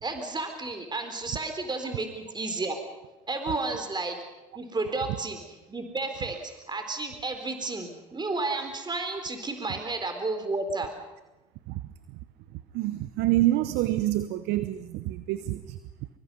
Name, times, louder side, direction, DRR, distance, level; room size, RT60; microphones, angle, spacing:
voice 1, 0.0-2.8 3.3-4.2 4.6-5.4 5.7-10.9, right 3 dB, 25° right, 4.0 m, -32 dB
voice 2, 12.7-15.8, right 15 dB, 70° right, 1.0 m, -27 dB
24.5 x 23.5 x 5.5 m
hypercardioid pair, 60°, 18 cm